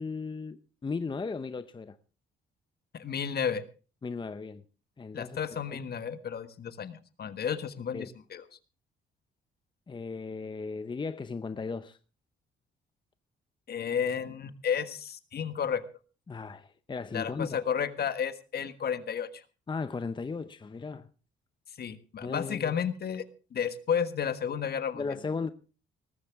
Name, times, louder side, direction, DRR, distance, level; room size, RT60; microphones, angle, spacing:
voice 1, 0.0-2.0 4.0-4.6 5.0-5.4 5.7-5.8 7.9-8.1 9.9-12.0 16.3-17.5 19.7-21.1 22.2-22.8 24.9-25.5, left 4 dB, 25° left, 0.7 m, -36 dB
voice 2, 2.9-3.6 5.1-8.4 13.7-15.8 17.1-19.4 21.8-23.2 23.5-25.0, left 7 dB, 55° left, 1.5 m, -32 dB
19.0 x 14.0 x 3.6 m
cardioid pair, 90°, 20 cm